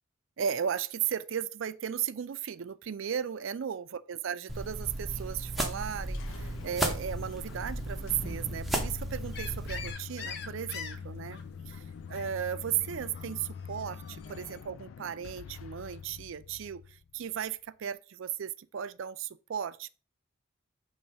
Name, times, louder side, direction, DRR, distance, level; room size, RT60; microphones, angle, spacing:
voice 1, 0.4-11.4 11.7-11.8 12.1-19.9, right 8 dB, 75° right, 0.4 m, -35 dB
sound 1, 4.5-9.9, right 1 dB, ahead, 0.8 m, -35 dB
sound 2, 5.9-17.5, left 6 dB, 75° left, 0.3 m, -44 dB
sound 3, 9.3-14.6, left 6 dB, 55° left, 0.9 m, -45 dB
7.0 x 3.1 x 5.1 m
head